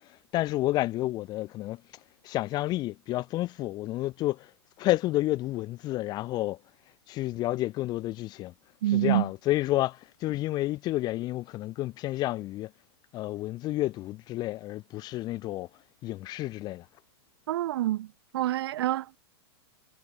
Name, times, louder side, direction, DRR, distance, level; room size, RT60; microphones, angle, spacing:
voice 1, 0.3-1.8 2.2-4.5 4.8-6.6 7.1-8.5 8.9-12.7 13.1-15.7 16.0-16.9, left 16 dB, 30° left, 2.1 m, -30 dB
voice 2, 8.8-9.2 17.5-18.1 18.3-19.2, right 14 dB, 65° right, 1.2 m, -26 dB
supercardioid pair, 150°, 14 cm